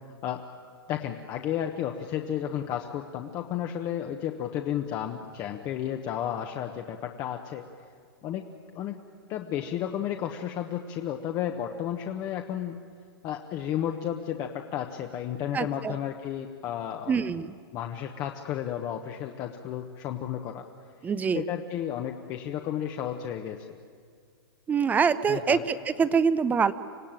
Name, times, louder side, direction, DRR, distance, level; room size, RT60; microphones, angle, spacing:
voice 1, 0.9-7.7 8.2-8.5 8.7-9.0 9.3-12.8 13.2-17.1 17.7-20.6 21.3-23.6 25.3-25.6, left 10 dB, 30° left, 4 dB, 1.1 m, -32 dB
voice 2, 15.5-16.0 17.1-17.6 21.0-21.4 24.7-26.7, right 6 dB, 10° right, 15 dB, 0.6 m, -25 dB
26.0 x 16.5 x 9.0 m, 2.1 s
hypercardioid pair, 145°, 13 cm